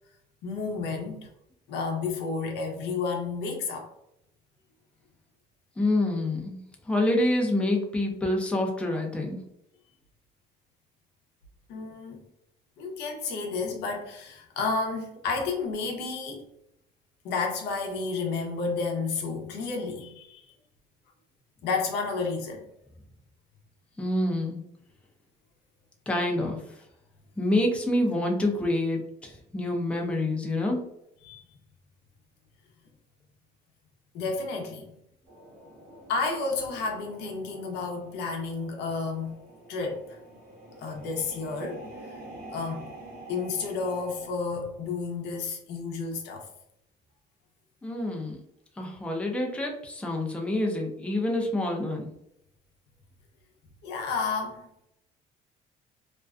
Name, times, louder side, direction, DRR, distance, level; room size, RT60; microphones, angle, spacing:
voice 1, 0.4-1.3 1.7-3.9 11.7-12.2 12.8-16.4 17.2-20.5 21.6-22.6 31.2-31.4 34.1-34.9 36.1-39.4 39.7-40.2 40.8-41.8 42.5-42.9 43.3-46.4 53.8-54.9, left 4 dB, 80° left, 0.6 m, -31 dB
voice 2, 5.8-6.6 6.9-9.4 24.0-24.6 26.1-26.6 27.4-30.8 47.8-48.4 48.8-52.1, left 1 dB, 5° left, 0.5 m, -27 dB
sound 1, 35.3-44.3, right 1 dB, 60° right, 1.0 m, -47 dB
2.5 x 2.2 x 2.3 m
cardioid pair, 110°, 17 cm